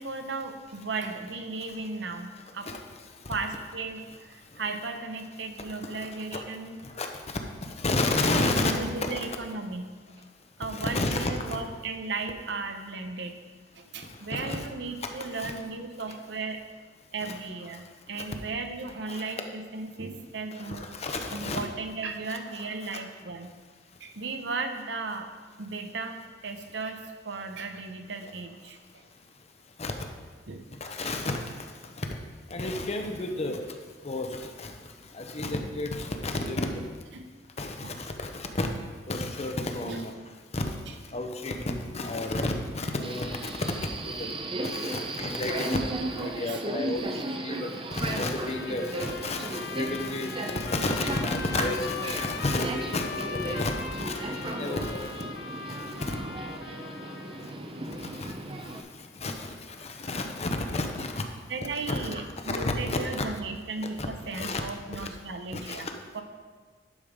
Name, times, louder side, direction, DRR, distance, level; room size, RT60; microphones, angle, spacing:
voice 1, 0.0-2.7 3.3-6.8 8.7-10.2 10.6-13.3 13.8-16.6 17.1-20.9 21.3-23.6 24.0-25.3 25.6-29.0 30.5-30.6 34.0-34.1 36.5-36.6 37.1-37.3 37.8-37.9 39.8-40.0 46.5-46.6 47.2-47.3 61.5-65.9 66.1-66.2, right 3 dB, 75° right, 6 dB, 0.9 m, -36 dB
voice 2, 7.8-9.3 10.7-11.6 14.3-14.7 15.4-15.5 17.2-17.4 19.1-19.2 20.6-21.7 29.8-29.9 30.8-31.4 32.0-32.1 32.5-33.6 34.0-34.7 35.1-36.8 37.6-38.7 39.1-40.1 40.5-40.6 41.1-43.5 44.0-44.3 44.6-55.1 56.0-56.2 58.2-58.3 59.2-61.2 61.9-62.2 62.5-63.3 64.0-64.1 64.3-64.6 64.9-65.1 65.5-65.9, left 2 dB, 35° left, 4 dB, 0.9 m, -31 dB
Subway metro underground, 43.0-58.8, right 1 dB, 30° right, 0.7 m, -35 dB
Trumpet, 48.3-57.5, left 5 dB, 65° left, 0.6 m, -40 dB
11.5 x 5.3 x 5.1 m, 1.5 s
head